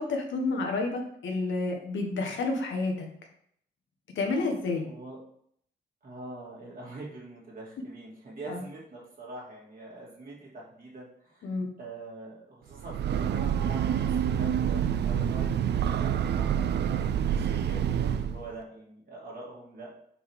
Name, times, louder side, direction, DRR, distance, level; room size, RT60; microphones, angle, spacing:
voice 1, 0.0-3.1 4.1-4.9 8.5-8.6 11.4-11.7, left 3 dB, 90° left, 2 dB, 1.2 m, -30 dB
voice 2, 4.8-5.2 6.0-19.9, right 2 dB, 50° right, -4 dB, 2.7 m, -44 dB
Breathing / Train, 12.7-18.5, right 9 dB, 65° right, 0.4 m, -27 dB
5.3 x 4.0 x 4.8 m, 0.66 s
cardioid pair, 100°, 19 cm